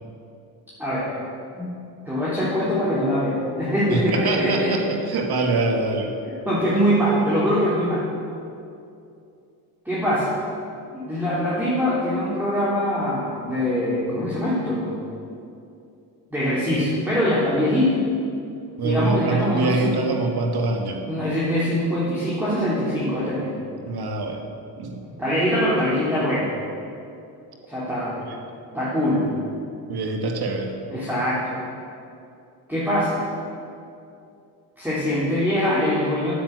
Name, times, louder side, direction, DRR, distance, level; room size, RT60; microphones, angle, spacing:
voice 1, 0.8-1.1 1.5-1.7 2.1-4.7 6.5-8.0 9.9-10.3 10.9-15.0 16.3-18.0 18.8-20.1 21.1-23.5 25.2-26.5 27.7-28.2 28.7-29.3 30.9-31.6 32.7-33.2 34.8-36.3, equal, 5° right, -9 dB, 3.8 m, -23 dB
voice 2, 3.9-6.1 18.8-21.0 23.9-24.5 24.8-25.0 28.2-28.4 29.9-30.7, right 3 dB, 50° right, 2 dB, 2.1 m, -24 dB
10.0 x 8.7 x 8.1 m, 2.6 s
supercardioid pair, 80°, 48 cm